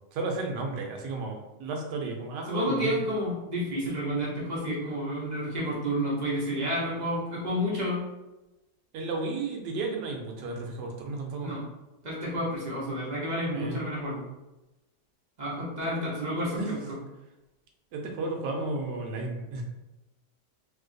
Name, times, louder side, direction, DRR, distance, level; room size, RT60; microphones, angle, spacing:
voice 1, 0.1-3.0 8.9-11.5 13.5-13.8 15.9-16.1 16.6-16.8 17.9-19.6, right 3 dB, 75° right, 2 dB, 1.2 m, -33 dB
voice 2, 2.5-8.0 11.4-11.6 12.0-14.2 15.4-17.0, equal, 45° right, -6 dB, 0.5 m, -30 dB
3.0 x 2.8 x 2.6 m, 1.0 s
omnidirectional pair, 1.9 m